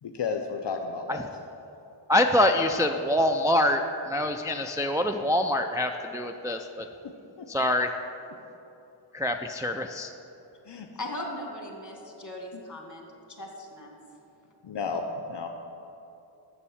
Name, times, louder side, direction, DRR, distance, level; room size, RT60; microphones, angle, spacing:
voice 1, 0.0-1.3 7.4-7.5 10.7-10.9 12.5-12.6 14.6-15.5, left 4 dB, 60° left, 4 dB, 0.6 m, -32 dB
voice 2, 2.1-3.8 4.1-6.9 7.5-7.9 9.1-10.1, left 1 dB, 10° right, 4 dB, 0.3 m, -25 dB
voice 3, 10.9-13.9, left 1 dB, 35° left, 1 dB, 1.7 m, -38 dB
7.3 x 7.0 x 7.1 m, 2.9 s
wide cardioid pair, 80°, 49 cm